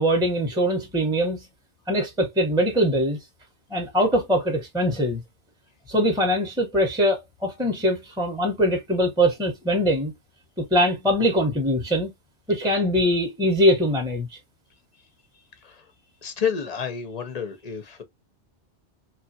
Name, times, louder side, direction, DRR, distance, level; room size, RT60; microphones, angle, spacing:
voice 1, 0.0-1.4 1.9-3.2 3.7-5.2 5.9-10.1 10.6-12.1 12.5-14.3, equal, 5° right, 0.8 m, -22 dB
voice 2, 16.2-18.0, left 7 dB, 45° left, 0.5 m, -30 dB
3.1 x 2.4 x 2.6 m
omnidirectional pair, 1.2 m